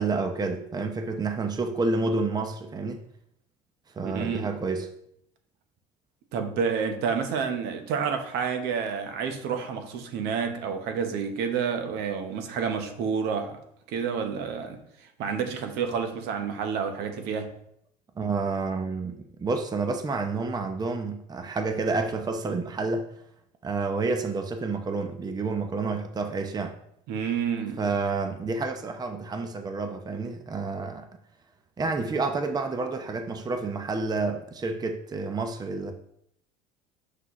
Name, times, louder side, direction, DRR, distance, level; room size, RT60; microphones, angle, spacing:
voice 1, 0.0-3.1 3.9-4.9 18.1-23.2 23.6-26.7 27.8-31.1 31.8-35.9, right 3 dB, 20° right, 6 dB, 0.7 m, -29 dB
voice 2, 4.0-4.5 6.3-13.6 13.9-17.5 27.1-27.8, right 6 dB, 65° right, 6 dB, 1.1 m, -29 dB
5.9 x 5.7 x 3.1 m, 0.71 s
supercardioid pair, 95°, 19 cm